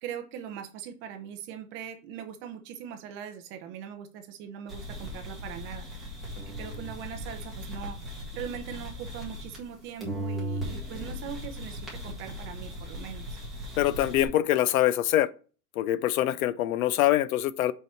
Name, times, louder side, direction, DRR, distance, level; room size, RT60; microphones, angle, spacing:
voice 1, 0.0-5.9 6.6-8.0 8.3-13.4, right 8 dB, 25° right, 0.7 m, -41 dB
sound 1, 4.7-9.7 10.0-14.2, equal, ahead, 1.7 m, -38 dB
voice 2, 13.8-15.3 15.8-17.7, left 13 dB, 65° left, 0.6 m, -24 dB
5.4 x 4.9 x 4.3 m
supercardioid pair, 160°, 47 cm